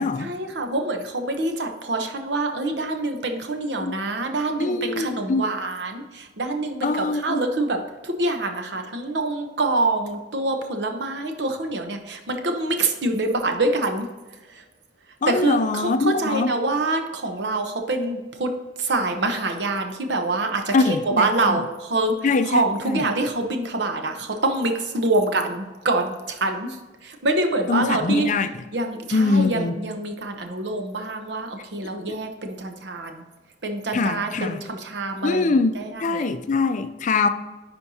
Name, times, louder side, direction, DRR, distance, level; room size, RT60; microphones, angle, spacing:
voice 1, 0.2-14.1 14.5-14.6 15.3-18.5 18.8-22.1 22.4-26.8 27.0-28.3 28.7-33.2 33.6-36.2, right 2 dB, 70° right, 0.9 m, -25 dB
voice 2, 4.6-5.4 6.8-7.4 15.2-16.5 20.7-21.6 22.2-23.1 27.7-28.5 29.1-29.7 33.9-34.6 35.2-35.7 36.0-37.3, left 3 dB, 45° left, 0.4 m, -23 dB
10.0 x 4.4 x 2.8 m
head